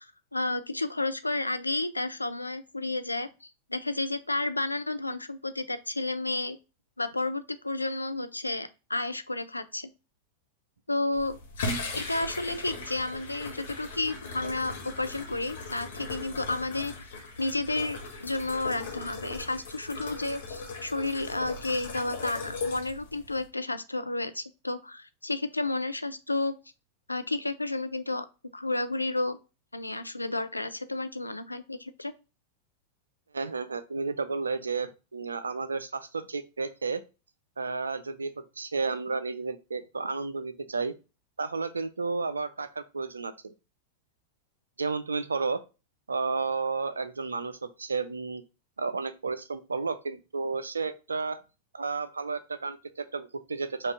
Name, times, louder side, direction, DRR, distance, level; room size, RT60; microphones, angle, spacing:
voice 1, 0.0-6.6 7.0-9.9 10.9-11.4 11.9-16.9 17.4-26.6 27.1-28.3 28.5-29.4 29.7-32.1, left 2 dB, 85° left, 10 dB, 0.4 m, -31 dB
sound 1, 11.1-23.5, left 3 dB, 60° left, 1.2 m, -38 dB
voice 2, 33.3-37.0 37.6-40.9 41.4-43.5 44.8-45.6 46.1-48.4 48.8-51.4 51.7-53.9, right 4 dB, 75° right, 12 dB, 0.4 m, -32 dB
5.2 x 2.4 x 3.6 m, 0.30 s
figure-of-eight pair, 90°, 0 cm